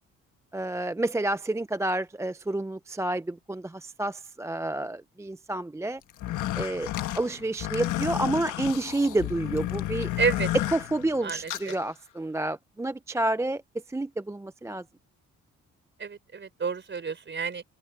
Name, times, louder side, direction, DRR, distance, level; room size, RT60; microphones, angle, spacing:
voice 1, 0.5-6.0 6.5-6.9 7.1-10.1 10.7-13.6 13.9-14.8, right 2 dB, 10° right, 0.5 m, -29 dB
sound 1, 6.1-11.8, left 14 dB, 80° left, 1.5 m, -32 dB
voice 2, 10.2-10.5 11.2-11.8 16.0-17.6, right 5 dB, 40° right, 4.5 m, -30 dB
open air
cardioid pair, 90°, 30 cm